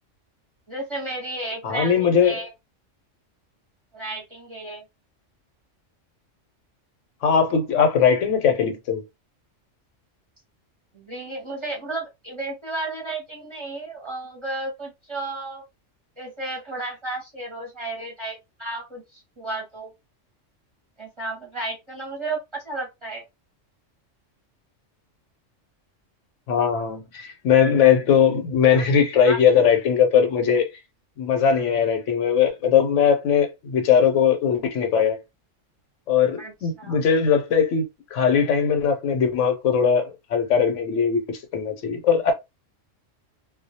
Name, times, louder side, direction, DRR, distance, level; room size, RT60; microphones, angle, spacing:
voice 1, 0.7-2.5 3.9-4.8 10.9-15.6 16.2-19.9 21.0-23.2 28.7-28.8 29.2-29.7 36.4-37.0, right 2 dB, 30° right, 0.7 m, -33 dB
voice 2, 1.6-2.4 7.2-9.0 26.5-30.7 31.2-35.2 36.1-37.9 38.1-42.3, left 7 dB, 75° left, 1.0 m, -20 dB
2.3 x 2.1 x 2.7 m
omnidirectional pair, 1.3 m